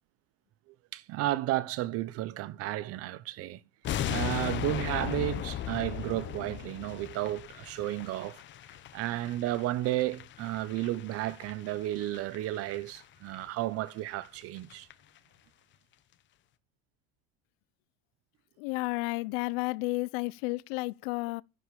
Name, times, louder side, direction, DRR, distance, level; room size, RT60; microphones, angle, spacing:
voice 1, 0.9-3.6 4.0-8.4 8.9-14.9, right 15 dB, 55° right, 1.0 m, -33 dB
sound 1, 3.8-13.0 13.3-13.5 13.9-14.0 14.2-14.3 14.6-14.9 15.2-15.3, left 11 dB, 40° left, 1.1 m, -38 dB
voice 2, 18.6-21.4, left 23 dB, 75° left, 0.7 m, -32 dB
10.5 x 10.0 x 6.8 m
supercardioid pair, 130°, 29 cm